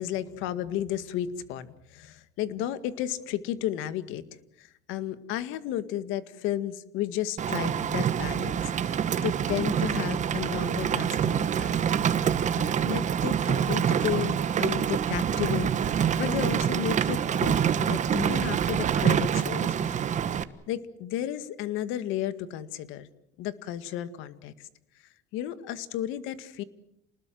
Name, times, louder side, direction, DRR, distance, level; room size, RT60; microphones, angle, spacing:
voice 1, 0.0-4.2 4.6-11.8 12.5-20.1 20.7-23.1 23.4-24.5 25.3-26.6, left 11 dB, 70° left, 12 dB, 2.0 m, -33 dB
Rain, 7.4-20.4, right 8 dB, 35° right, 1.3 m, -26 dB
28.5 x 20.5 x 7.7 m, 0.75 s
cardioid pair, 130°, 21 cm